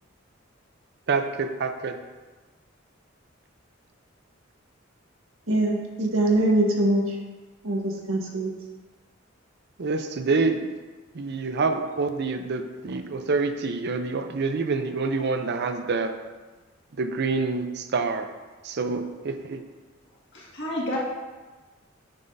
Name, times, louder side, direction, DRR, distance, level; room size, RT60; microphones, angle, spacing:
voice 1, 1.1-2.0 9.8-10.7 11.1-16.1 17.0-18.3 18.6-19.6, right 4 dB, 55° right, 7 dB, 0.5 m, -27 dB
voice 2, 5.5-7.0 7.6-7.8 8.1-8.5, right 1 dB, 85° right, -1 dB, 1.3 m, -22 dB
voice 3, 20.3-21.0, left 1 dB, 60° left, -5 dB, 1.8 m, -30 dB
8.9 x 5.8 x 2.7 m, 1.3 s
head